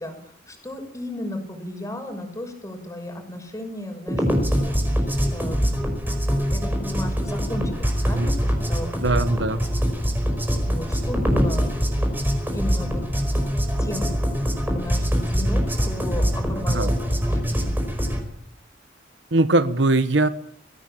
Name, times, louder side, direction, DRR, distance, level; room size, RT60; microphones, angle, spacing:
voice 1, 0.0-4.3 4.6-5.6 6.5-9.9 10.7-11.7 12.5-13.0 13.3-13.4 13.8-14.1 14.7-17.7, left 1 dB, 15° left, 5 dB, 6.1 m, -34 dB
sound 1, 4.1-18.2, equal, 10° right, 5.0 m, -23 dB
voice 2, 9.0-9.6 16.7-16.9 19.3-20.3, right 2 dB, 70° right, 13 dB, 1.3 m, -21 dB
22.0 x 16.0 x 8.8 m, 0.70 s
head